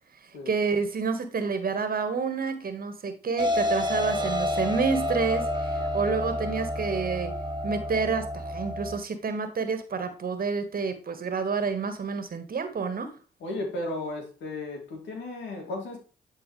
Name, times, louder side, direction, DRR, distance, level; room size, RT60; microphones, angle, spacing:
voice 1, 0.1-7.3 7.6-13.2, right 5 dB, 50° right, 9 dB, 1.6 m, -29 dB
sound 1, 3.4-9.0, left 1 dB, 25° right, 1.9 m, -29 dB
voice 2, 13.4-16.0, left 2 dB, 75° left, 1 dB, 2.7 m, -34 dB
11.0 x 4.6 x 3.3 m, 0.34 s
hypercardioid pair, 40°, 19 cm